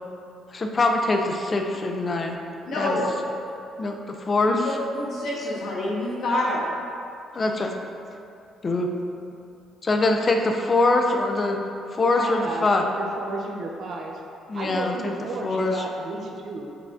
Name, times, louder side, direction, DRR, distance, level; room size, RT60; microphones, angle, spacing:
voice 1, 0.5-2.4 2.8-3.0 3.8-4.7 7.3-7.7 8.6-8.9 9.8-11.6 11.9-12.8 14.5-15.1 15.4-15.8, left 2 dB, 25° left, 3 dB, 0.4 m, -23 dB
voice 2, 2.6-3.0 4.4-6.6 12.1-12.3, left 1 dB, 65° left, -6 dB, 1.2 m, -27 dB
voice 3, 12.3-14.2 14.5-16.7, right 2 dB, 50° right, 1 dB, 0.5 m, -33 dB
5.5 x 3.8 x 2.4 m, 2.6 s
cardioid pair, 145°, 0 cm